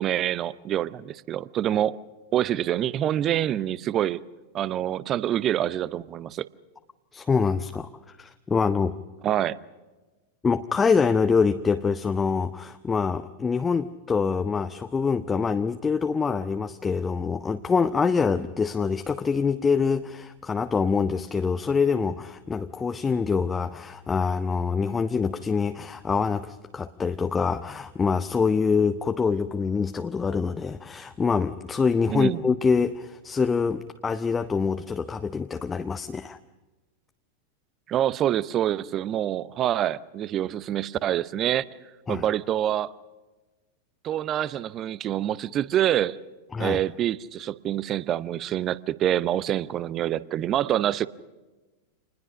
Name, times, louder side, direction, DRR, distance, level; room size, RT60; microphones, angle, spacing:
voice 1, 0.0-2.0 2.3-4.2 4.5-6.5 9.2-9.6 32.1-32.4 37.9-41.6 42.1-42.9 44.0-46.2 46.6-51.1, right 11 dB, 30° right, 0.7 m, -26 dB
voice 2, 7.1-7.9 8.2-9.0 10.4-36.4 42.1-42.2 46.5-46.8, left 5 dB, 15° left, 0.7 m, -25 dB
27.0 x 20.0 x 6.3 m
figure-of-eight pair, 90°, 0 cm